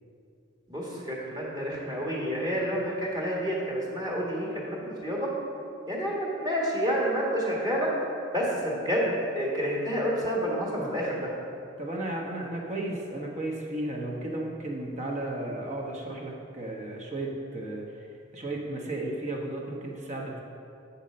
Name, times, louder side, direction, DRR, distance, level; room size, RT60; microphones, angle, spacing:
voice 1, 0.7-5.3 5.9-7.9 8.3-11.3, equal, 20° right, -4 dB, 1.5 m, -29 dB
voice 2, 11.8-18.1 18.3-20.4, right 1 dB, 40° right, -1 dB, 1.1 m, -34 dB
8.2 x 4.1 x 6.5 m, 2.5 s
head